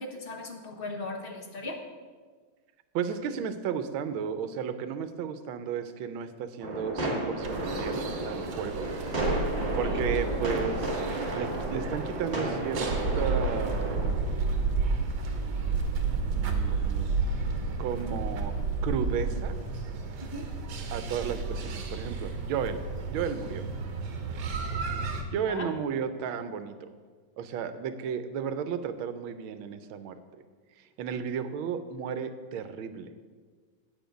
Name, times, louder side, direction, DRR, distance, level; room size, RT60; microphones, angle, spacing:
voice 1, 0.0-1.8 9.8-10.0 20.3-20.4 25.5-25.7, left 2 dB, 35° left, 2 dB, 0.9 m, -37 dB
voice 2, 2.9-8.9 9.3-9.5 9.8-11.0 11.3-12.9 13.1-14.1 16.2-17.1 17.8-18.6 18.8-19.6 20.9-22.8 23.1-23.6 25.2-26.9 27.4-30.2 31.0-33.1, right 7 dB, 80° right, 10 dB, 1.5 m, -33 dB
sound 1, 6.6-14.1, right 1 dB, 30° right, 2.3 m, -32 dB
sound 2, 7.4-25.2, right 4 dB, 60° right, 1.4 m, -31 dB
9.2 x 8.3 x 5.1 m, 1.5 s
omnidirectional pair, 2.2 m